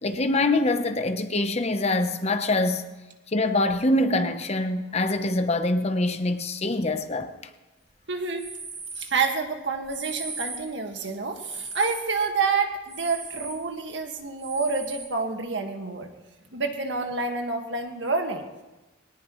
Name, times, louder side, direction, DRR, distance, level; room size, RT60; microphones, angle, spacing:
voice 1, 0.0-2.8 3.3-7.3, left 2 dB, 35° left, 0.9 m, -24 dB
voice 2, 8.1-8.5 9.0-16.1 16.5-18.4, right 4 dB, 65° right, 1.8 m, -28 dB
sound 1, 8.4-9.2 9.8-10.7 11.4-12.1 12.9-13.6 14.4-15.1, right 4 dB, 35° right, 3.3 m, -38 dB
21.5 x 19.0 x 3.2 m
head